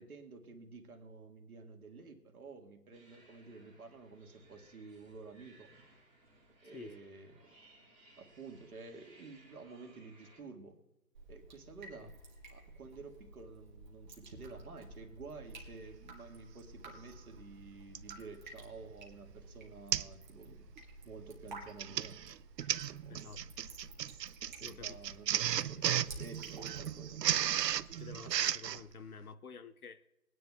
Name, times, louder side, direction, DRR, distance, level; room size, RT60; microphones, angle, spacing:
voice 1, 0.0-5.7 6.6-7.4 8.2-10.8 11.3-12.1 12.5-20.7 21.0-22.2 23.0-23.4 24.6-27.2, right 4 dB, 60° right, 1.8 m, -51 dB
sound 1, 2.9-10.4, right 2 dB, 5° left, 1.1 m, -63 dB
Drip, 11.1-28.1, right 2 dB, 30° right, 1.5 m, -53 dB
Printer, 16.8-16.9 17.9-18.2 18.8-19.0 19.3-19.4 19.9-20.2 20.5-20.8 21.6-28.8, right 10 dB, 80° right, 0.6 m, -34 dB
voice 2, 23.1-23.7 24.6-25.0 25.3-25.4 25.9-26.0 28.0-30.1, left 5 dB, 60° left, 0.7 m, -50 dB
22.0 x 9.6 x 2.3 m
hypercardioid pair, 170°, 49 cm